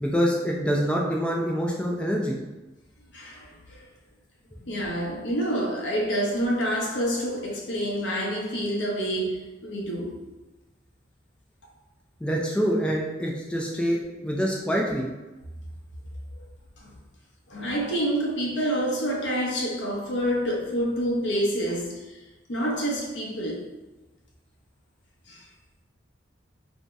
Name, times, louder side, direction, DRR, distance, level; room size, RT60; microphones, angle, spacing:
voice 1, 0.0-2.4 12.2-15.1, equal, 5° left, 0.3 m, -26 dB
voice 2, 3.1-3.8 4.6-10.2 16.8-17.0 17.5-22.2 22.5-23.7 25.3-25.4, equal, 75° left, 0.7 m, -28 dB
2.7 x 2.0 x 3.4 m
head